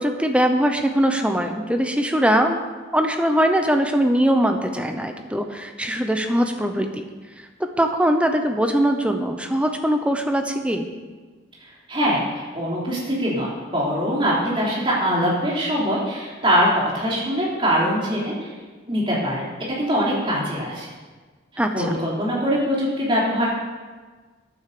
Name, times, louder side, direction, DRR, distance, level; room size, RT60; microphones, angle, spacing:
voice 1, 0.0-2.6 2.9-7.1 7.8-10.9 21.6-21.9, equal, 5° right, 5 dB, 0.7 m, -21 dB
voice 2, 11.6-12.2 12.5-18.5 18.9-19.5 19.8-20.9 21.7-23.5, equal, 25° right, -5 dB, 3.3 m, -22 dB
11.0 x 9.3 x 6.8 m, 1.4 s
head